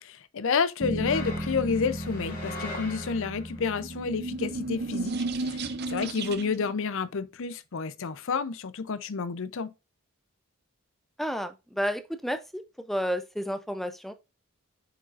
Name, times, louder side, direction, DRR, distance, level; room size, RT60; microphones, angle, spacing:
voice 1, 0.0-9.7, left 5 dB, 60° left, 0.5 m, -30 dB
Bass guitar, 0.8-5.2, right 1 dB, 15° right, 1.2 m, -36 dB
sound 1, 1.0-3.7, left 2 dB, 40° left, 2.4 m, -41 dB
sound 2, 3.8-6.7, right 3 dB, 45° right, 0.6 m, -33 dB
voice 2, 11.2-12.6 12.9-14.1, equal, ahead, 0.4 m, -31 dB
8.0 x 5.0 x 2.4 m
head